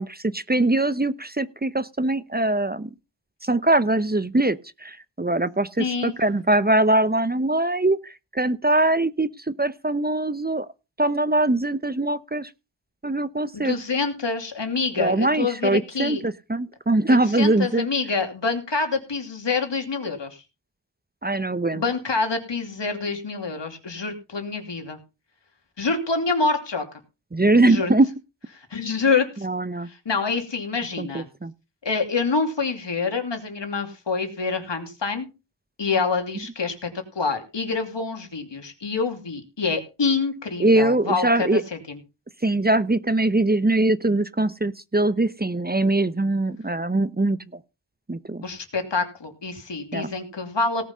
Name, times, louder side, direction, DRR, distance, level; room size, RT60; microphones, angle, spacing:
voice 1, 0.0-2.9 3.4-10.7 11.0-12.5 13.0-13.8 15.0-17.9 21.2-21.8 27.3-28.1 29.4-29.9 31.0-31.5 40.6-41.6 42.4-47.4 48.1-48.4 49.9-50.1, right 2 dB, 20° right, 15 dB, 0.9 m, -22 dB
voice 2, 5.8-6.1 13.5-16.2 17.1-20.4 21.7-25.0 25.8-26.8 27.6-27.9 28.5-29.5 29.9-31.3 31.8-35.3 35.8-36.9 37.1-42.0 48.4-50.9, left 4 dB, 80° left, 5 dB, 2.8 m, -26 dB
18.0 x 5.9 x 5.5 m, 0.29 s
cardioid pair, 40°, 42 cm